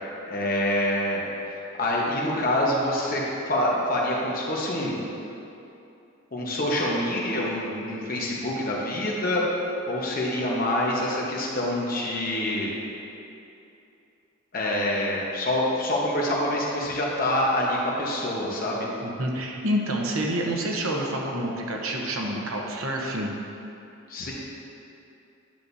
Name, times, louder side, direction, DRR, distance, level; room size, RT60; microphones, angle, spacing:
voice 1, 0.3-1.2 1.8-4.9 6.3-9.4 9.8-12.7 14.5-18.9 24.1-24.3, left 1 dB, 40° left, -4 dB, 1.1 m, -26 dB
voice 2, 19.0-23.3, right 1 dB, 75° right, 0 dB, 0.9 m, -28 dB
10.5 x 6.5 x 2.7 m, 2.8 s
head